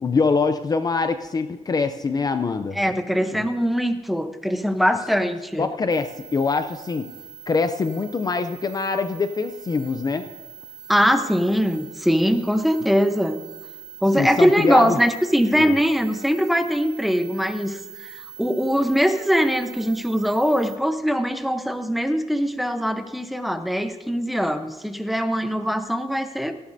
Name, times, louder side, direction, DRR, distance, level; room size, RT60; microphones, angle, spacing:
voice 1, 0.0-2.8 3.3-3.5 5.6-7.1 7.5-10.2 14.2-15.0 15.5-15.7, left 4 dB, 35° left, 9 dB, 0.5 m, -24 dB
voice 2, 2.7-5.7 10.9-13.4 14.0-18.1 18.4-26.6, equal, ahead, 8 dB, 0.8 m, -22 dB
sound 1, 5.9-20.8, right 5 dB, 85° right, 2.6 m, -42 dB
18.0 x 14.0 x 2.7 m, 1.1 s
wide cardioid pair, 130°, 12 cm